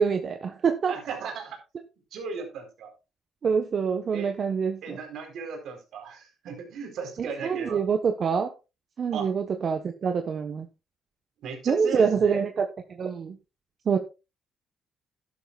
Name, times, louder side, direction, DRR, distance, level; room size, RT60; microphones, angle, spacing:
voice 1, 0.0-0.9 3.4-5.0 7.2-8.5 9.0-10.7 11.7-12.6 12.9-13.4 13.8-14.0, right 6 dB, 50° right, 5 dB, 1.2 m, -25 dB
voice 2, 0.9-1.6 2.1-2.9 4.1-4.3 4.8-7.8 9.1-9.3 11.4-12.4, right 5 dB, 75° right, 4 dB, 4.1 m, -36 dB
12.5 x 11.5 x 2.5 m, 0.28 s
cardioid pair, 90°, 0 cm